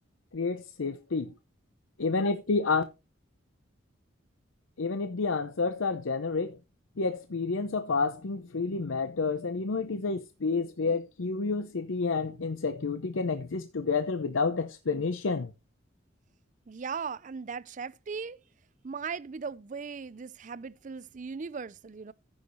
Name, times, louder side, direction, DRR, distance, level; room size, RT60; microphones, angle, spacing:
voice 1, 0.3-1.3 2.0-2.8 4.8-6.6 7.0-15.5, left 4 dB, 80° left, 0.7 m, -29 dB
voice 2, 16.7-18.4 18.8-22.1, right 5 dB, 40° right, 0.4 m, -38 dB
14.5 x 6.4 x 3.0 m
head